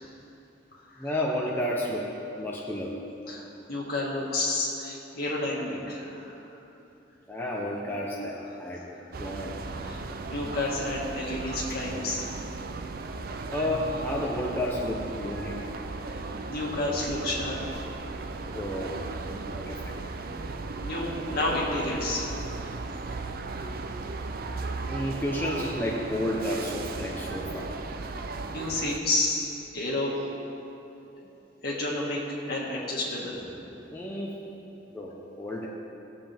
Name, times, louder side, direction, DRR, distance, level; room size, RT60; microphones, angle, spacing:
voice 1, 1.0-2.1 2.4-3.0 7.3-9.5 13.5-15.6 18.4-19.0 19.3-19.9 24.9-27.7 33.9-34.3 34.9-35.7, left 1 dB, 10° left, -4 dB, 0.9 m, -31 dB
voice 2, 3.7-6.4 9.8-12.3 16.1-16.2 16.5-18.0 20.8-22.3 28.5-30.2 31.6-32.2 32.4-33.4, left 2 dB, 55° left, -4 dB, 2.0 m, -30 dB
sound 1, 9.1-29.0, right 3 dB, 50° right, 0.5 m, -36 dB
17.5 x 7.6 x 3.5 m, 2.9 s
head